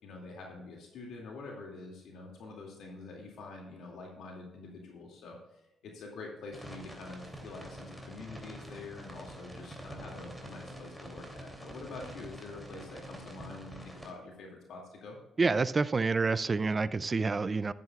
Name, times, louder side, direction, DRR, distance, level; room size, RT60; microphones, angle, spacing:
voice 1, 0.0-15.2, left 3 dB, 75° left, -1 dB, 2.4 m, -46 dB
sound 1, 6.5-14.1, equal, ahead, 2.8 m, -46 dB
voice 2, 15.4-17.7, right 4 dB, 30° right, 16 dB, 0.4 m, -28 dB
12.5 x 10.5 x 2.4 m, 0.93 s
cardioid pair, 90°, 0 cm